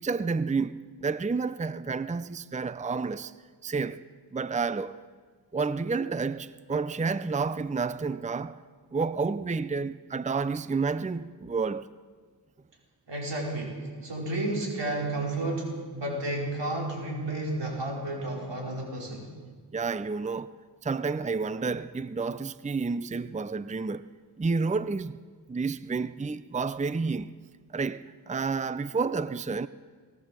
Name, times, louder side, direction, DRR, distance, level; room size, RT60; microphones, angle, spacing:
voice 1, 0.0-3.3 3.6-4.0 4.3-5.0 5.5-8.6 8.9-11.9 19.7-20.5 20.8-24.0 24.4-25.2 25.5-27.3 27.7-29.7, right 4 dB, 20° right, 0.6 m, -30 dB
voice 2, 13.1-19.3, right 2 dB, 90° right, 5.3 m, -32 dB
19.0 x 18.5 x 7.6 m
wide cardioid pair, 55°, 41 cm